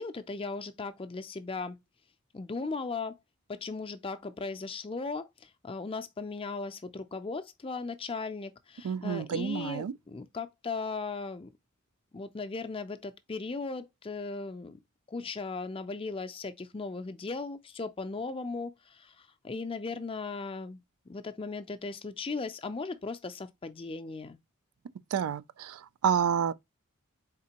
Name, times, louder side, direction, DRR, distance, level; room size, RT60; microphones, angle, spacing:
voice 1, 0.0-1.8 2.3-3.2 3.5-11.5 12.1-14.8 15.1-24.4, left 3 dB, 25° left, 0.4 m, -37 dB
voice 2, 8.8-9.9 25.1-26.5, right 8 dB, 80° right, 0.3 m, -29 dB
4.2 x 3.6 x 2.9 m
head